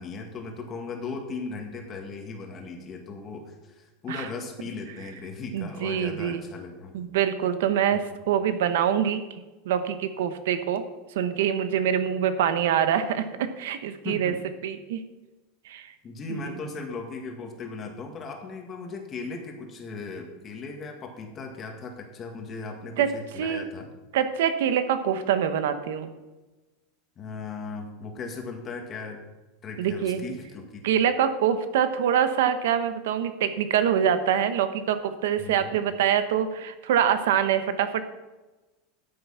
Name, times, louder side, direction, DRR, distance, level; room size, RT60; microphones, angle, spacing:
voice 1, 0.0-6.9 7.9-8.2 14.0-14.4 16.0-23.9 27.2-29.2 29.6-30.8 35.4-35.8, left 4 dB, 25° left, 2 dB, 1.9 m, -37 dB
voice 2, 5.5-6.4 6.9-9.2 9.6-10.8 11.1-14.3 14.6-15.0 15.6-15.9 16.3-16.5 23.0-23.1 23.4-23.6 24.1-26.1 29.8-30.2 30.8-38.0, right 9 dB, 80° right, 10 dB, 1.1 m, -25 dB
12.5 x 7.8 x 5.8 m, 1.1 s
supercardioid pair, 160°, 0 cm